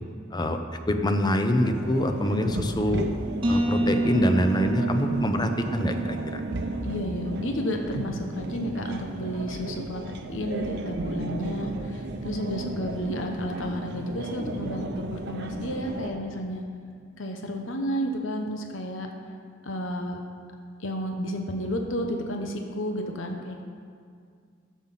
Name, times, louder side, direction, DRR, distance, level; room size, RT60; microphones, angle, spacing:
voice 1, 0.9-3.1 3.4-6.4, left 1 dB, 20° left, 6 dB, 0.7 m, -25 dB
sound 1, 1.6-16.1, right 2 dB, 60° right, 0.8 m, -34 dB
sound 2, 3.4-9.0, right 2 dB, 25° right, 1.1 m, -30 dB
voice 2, 6.8-10.0 10.3-16.6 17.2-19.1 19.6-20.2 20.8-23.6, equal, 80° left, 3 dB, 1.0 m, -32 dB
11.5 x 7.5 x 5.8 m, 2.2 s
head